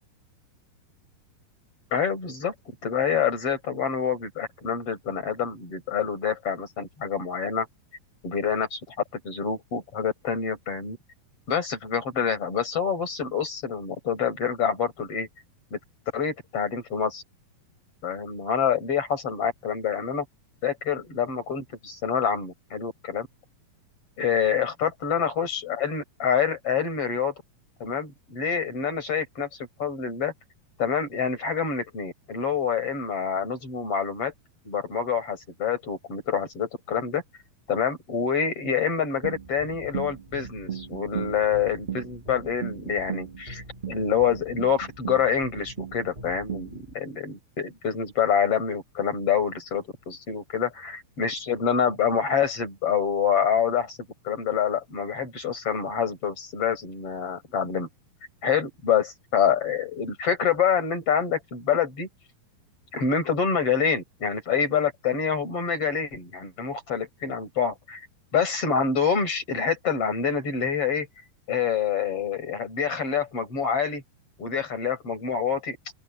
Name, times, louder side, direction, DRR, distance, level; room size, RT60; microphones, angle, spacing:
voice 1, 1.9-2.5 2.8-7.7 8.2-8.9 9.2-11.0 11.5-15.3 15.7-15.8 16.1-17.2 18.0-20.3 20.6-23.3 24.2-27.3 27.8-30.3 30.8-34.3 34.6-37.2 37.7-54.0 54.2-57.9 58.4-62.1 62.9-68.0 68.3-71.1 71.5-74.0 74.4-75.8, left 7 dB, 40° left, 6.1 m, -26 dB
sound 1, 39.2-46.9, right 7 dB, 20° right, 1.3 m, -37 dB
open air
omnidirectional pair, 4.2 m